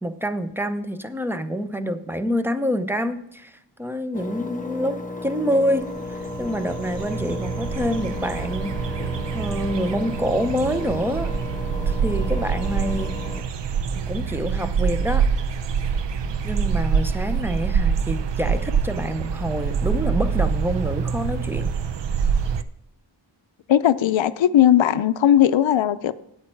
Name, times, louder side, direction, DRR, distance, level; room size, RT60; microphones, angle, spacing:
voice 1, 0.0-8.8 9.3-11.3 11.9-13.2 14.0-15.3 16.4-21.7, equal, 5° right, 11 dB, 0.6 m, -27 dB
Engine, 4.1-13.4, left 2 dB, 15° left, 1.0 m, -34 dB
sound 1, 5.8-5.9 6.1-22.6, right 6 dB, 60° right, 0.7 m, -25 dB
voice 2, 23.7-26.1, left 11 dB, 70° left, 14 dB, 0.6 m, -18 dB
8.7 x 8.6 x 4.5 m, 0.80 s
wide cardioid pair, 85°, 48 cm